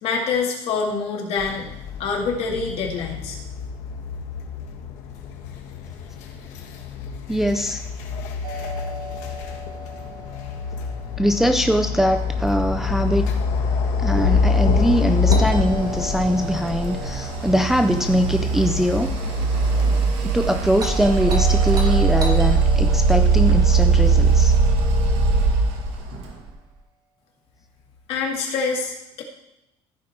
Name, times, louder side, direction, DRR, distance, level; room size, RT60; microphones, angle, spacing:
voice 1, 0.0-1.7 2.0-3.4 28.1-29.2, left 4 dB, 55° left, 1 dB, 2.1 m, -25 dB
sound 1, 1.4-20.1, left 5 dB, 90° left, 1.6 m, -26 dB
voice 2, 7.3-7.8 11.2-13.3 14.0-19.1 20.2-24.6, equal, 5° right, 6 dB, 0.4 m, -22 dB
Doorbell, 8.4-12.4 15.3-19.5 20.8-25.2, right 1 dB, 30° right, 1.7 m, -37 dB
sound 2, 12.0-26.5, right 4 dB, 60° right, 2.0 m, -21 dB
15.0 x 5.2 x 4.5 m, 0.88 s
cardioid pair, 165°, 12 cm